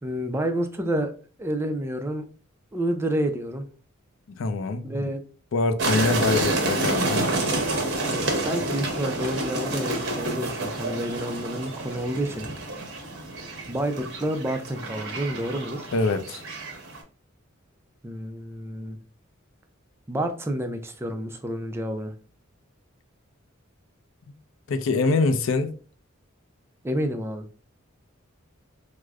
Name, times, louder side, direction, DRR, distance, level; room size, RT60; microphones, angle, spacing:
voice 1, 0.0-1.1 1.4-2.3 2.7-3.7 4.8-5.2 7.9-12.5 13.7-15.9 18.0-19.0 20.1-22.1 26.8-27.5, right 1 dB, 10° right, 0.4 m, -29 dB
voice 2, 4.3-5.1 5.5-7.3 15.9-16.4 24.7-25.7, left 3 dB, 65° left, 0.4 m, -24 dB
sound 1, 5.8-17.0, right 2 dB, 55° right, 0.9 m, -29 dB
4.8 x 2.0 x 2.3 m
head